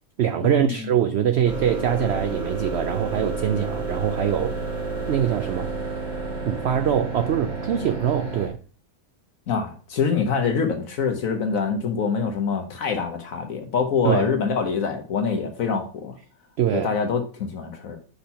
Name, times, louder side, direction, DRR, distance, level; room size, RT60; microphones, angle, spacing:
voice 1, 0.2-4.7 5.1-5.7 6.4-8.6 14.0-14.3 16.6-16.9, right 9 dB, 80° right, 0.6 m, -23 dB
sound 1, 1.4-8.5, right 3 dB, 45° right, 2.4 m, -30 dB
voice 2, 9.5-16.1 16.7-18.0, left 5 dB, 65° left, 1.2 m, -25 dB
5.6 x 4.3 x 5.5 m
omnidirectional pair, 1.6 m